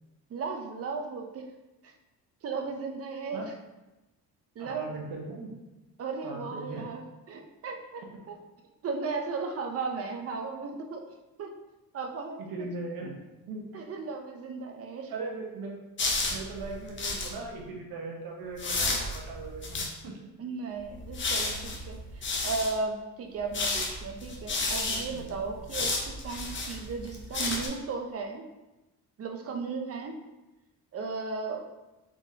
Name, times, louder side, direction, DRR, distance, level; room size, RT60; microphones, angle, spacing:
voice 1, 0.3-1.5 1.8-1.9 2.4-3.5 4.6-5.0 6.0-8.4 8.8-11.0 11.4-11.5 11.9-12.7 13.7-15.1 20.4-28.5 29.2-30.2 30.9-31.6, right 4 dB, 40° right, 4 dB, 0.6 m, -35 dB
voice 2, 4.6-5.5 6.2-6.8 12.4-13.2 13.5-13.8 15.1-15.8 16.3-20.3 25.1-25.4, right 3 dB, 75° right, 0 dB, 1.0 m, -39 dB
sound 1, 16.0-17.3 18.6-19.9 20.8-22.7 23.4-27.7, left 3 dB, 30° left, 0.6 m, -32 dB
3.7 x 3.7 x 2.7 m, 1.0 s
cardioid pair, 120°, 37 cm